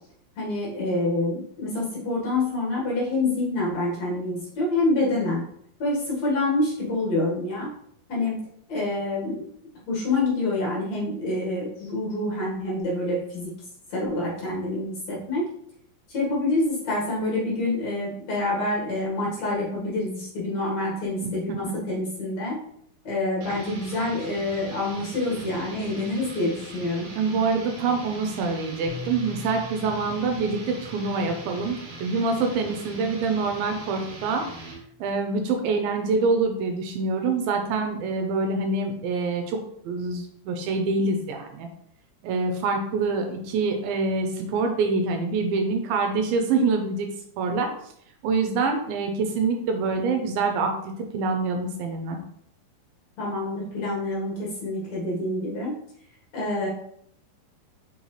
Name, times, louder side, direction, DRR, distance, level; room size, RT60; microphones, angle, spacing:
voice 1, 0.4-5.4 5.8-7.7 8.1-8.4 8.7-9.5 9.9-13.5 13.9-15.5 16.1-22.6 23.0-27.1 53.2-55.7 56.3-56.7, left 2 dB, 55° left, -4 dB, 2.4 m, -27 dB
sound 1, 23.4-34.8, right 2 dB, 60° right, 2.0 m, -41 dB
voice 2, 27.2-34.5 35.0-39.6 39.9-41.7 42.2-47.1 47.4-47.7 48.2-52.2, right 4 dB, 80° right, 4 dB, 2.4 m, -25 dB
Bass guitar, 28.9-35.1, left 2 dB, 70° left, 2.3 m, -45 dB
5.6 x 5.5 x 3.1 m, 0.69 s
omnidirectional pair, 4.5 m